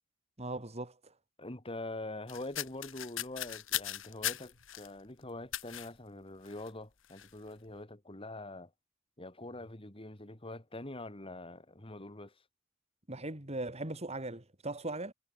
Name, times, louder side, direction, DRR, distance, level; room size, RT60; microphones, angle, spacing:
voice 1, 0.4-1.1 13.1-15.1, right 2 dB, 30° right, 3.4 m, -39 dB
voice 2, 1.4-8.7 9.2-12.3, left 2 dB, 25° left, 2.8 m, -44 dB
sound 1, 2.3-4.9 5.5-5.9 6.5-6.7 7.0-7.3, left 13 dB, 70° left, 2.1 m, -38 dB
head